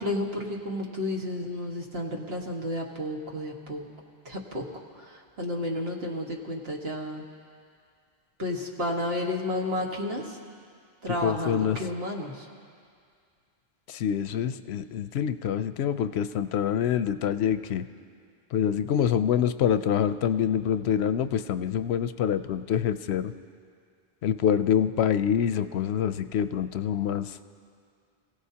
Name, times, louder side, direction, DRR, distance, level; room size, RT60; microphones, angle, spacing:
voice 1, 0.0-3.8 4.3-4.7 4.9-7.2 8.4-10.4 11.0-12.5, left 1 dB, 70° right, -1 dB, 1.9 m, -31 dB
voice 2, 11.2-11.8 13.9-17.8 18.5-23.3 24.2-27.4, left 9 dB, 90° left, 12 dB, 0.8 m, -26 dB
27.0 x 16.0 x 2.8 m, 2.2 s
omnidirectional pair, 1.1 m